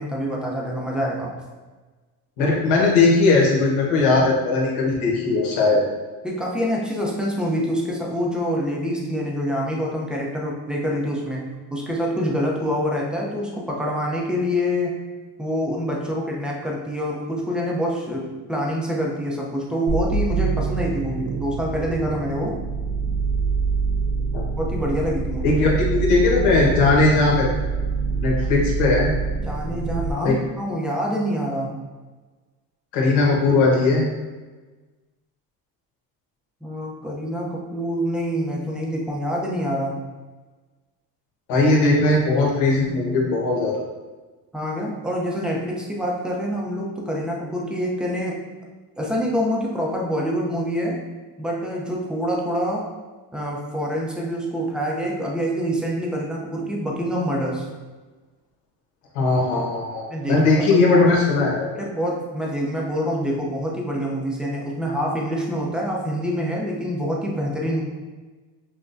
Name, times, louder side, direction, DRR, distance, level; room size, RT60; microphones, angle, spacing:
voice 1, 0.0-1.3 6.2-15.0 15.4-22.6 24.6-25.6 29.4-31.7 36.6-40.0 44.5-48.4 49.0-51.0 51.4-52.9 53.3-57.7 60.1-60.4 61.8-67.8, equal, ahead, -3 dB, 0.6 m, -26 dB
voice 2, 2.4-5.8 24.3-24.4 25.4-27.5 28.2-29.1 30.2-30.4 32.9-34.1 41.5-43.8 59.1-61.7, left 3 dB, 75° left, -2 dB, 1.3 m, -19 dB
sound 1, 19.9-30.1, right 4 dB, 70° right, 0.7 m, -25 dB
5.9 x 2.2 x 2.6 m, 1.3 s
supercardioid pair, 110°, 47 cm